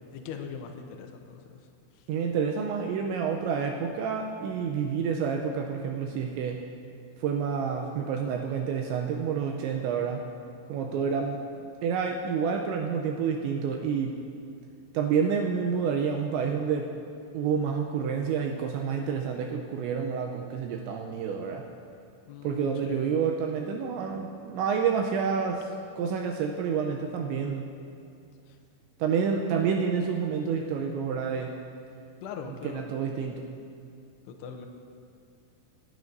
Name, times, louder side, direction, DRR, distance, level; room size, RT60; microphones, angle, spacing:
voice 1, 0.1-1.7 1.9-2.1 10.9-11.3 22.3-23.1 28.5-28.6 32.2-32.9 34.3-34.7, left 6 dB, 90° left, 4 dB, 2.4 m, -41 dB
voice 2, 2.1-6.6 7.2-10.2 10.7-11.4 11.8-14.2 14.9-16.9 17.3-21.7 22.4-27.7 29.0-31.5 32.6-33.4, right 6 dB, 80° right, 2 dB, 2.8 m, -29 dB
27.5 x 9.2 x 2.6 m, 2.5 s
omnidirectional pair, 5.6 m